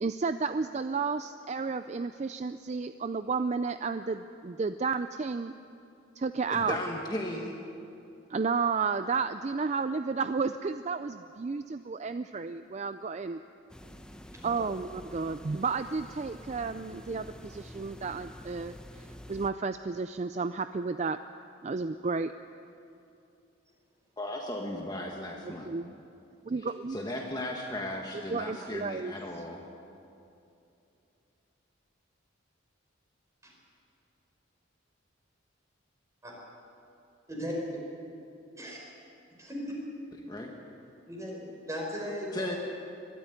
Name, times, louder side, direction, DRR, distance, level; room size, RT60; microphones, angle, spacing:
voice 1, 0.0-5.5 6.2-6.8 8.3-13.4 14.4-21.2 21.6-22.3 25.4-26.0 26.5-27.0 28.1-29.1, right 4 dB, 35° right, 11 dB, 0.4 m, -32 dB
voice 2, 6.5-7.6 24.2-25.7 26.9-29.6 40.3-40.5 42.3-42.6, left 1 dB, 20° left, 0 dB, 1.5 m, -36 dB
sound 1, 13.7-19.5, equal, 5° left, 0.8 m, -48 dB
voice 3, 39.4-39.7 41.1-42.6, equal, 15° right, -2 dB, 4.9 m, -37 dB
22.0 x 13.0 x 9.6 m, 2.7 s
head